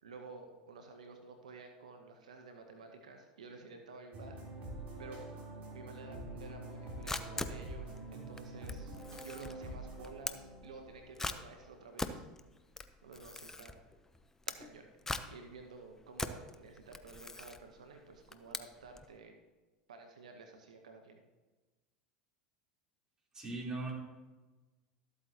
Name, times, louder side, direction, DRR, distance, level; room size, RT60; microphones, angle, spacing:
voice 1, 0.0-4.4 5.0-5.2 5.7-12.2 13.0-13.8 14.5-14.9 15.3-19.3 19.9-21.2, right 3 dB, 90° right, 4 dB, 0.9 m, -52 dB
sound 1, 4.1-11.9, right 1 dB, 50° right, 3.5 m, -46 dB
Camera, 6.7-19.1, left 2 dB, 15° left, 0.7 m, -43 dB
voice 2, 23.3-23.9, right 2 dB, 20° right, -3 dB, 3.4 m, -39 dB
13.0 x 8.2 x 2.9 m, 1.2 s
hypercardioid pair, 85°, 4 cm